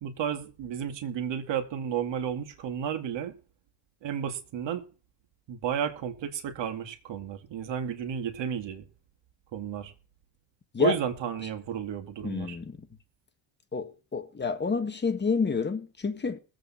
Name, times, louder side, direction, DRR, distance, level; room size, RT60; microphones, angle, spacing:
voice 1, 0.0-3.4 4.0-4.9 5.5-8.9 9.5-9.9 10.8-12.6, right 8 dB, 60° right, 2.4 m, -32 dB
voice 2, 12.2-12.9 13.7-16.4, left 5 dB, 20° left, 1.6 m, -29 dB
21.0 x 8.1 x 4.4 m
cardioid pair, 130°, 50 cm